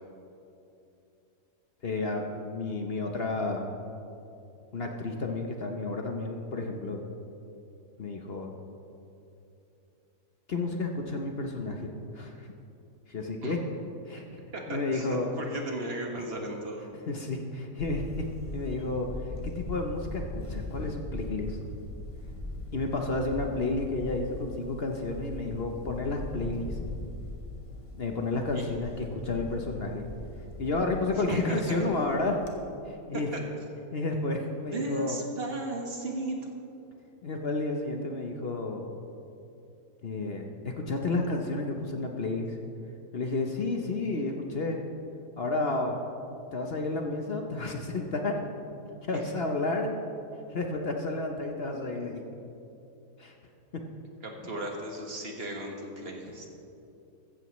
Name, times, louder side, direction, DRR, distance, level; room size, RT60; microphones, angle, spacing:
voice 1, 1.8-3.7 4.7-7.0 8.0-8.5 10.5-12.5 13.1-13.6 14.1-15.3 17.1-18.3 18.5-21.6 22.7-26.8 28.0-30.1 30.6-32.4 32.8-33.3 33.9-35.2 37.2-38.9 40.0-42.6 43.1-44.8 45.4-46.0 46.5-48.4 49.0-49.9 50.5-52.2 53.2-53.3 53.7-53.8 54.4-54.5, left 2 dB, 45° left, 2 dB, 0.9 m, -31 dB
voice 2, 14.5-16.9 28.5-28.6 31.3-31.8 33.1-33.4 34.7-36.5 49.1-49.2 54.2-56.5, right 1 dB, 40° right, 1 dB, 1.7 m, -36 dB
Camera, 17.8-32.5, left 1 dB, 25° left, 1.1 m, -40 dB
15.0 x 14.0 x 3.1 m, 2.7 s
omnidirectional pair, 1.7 m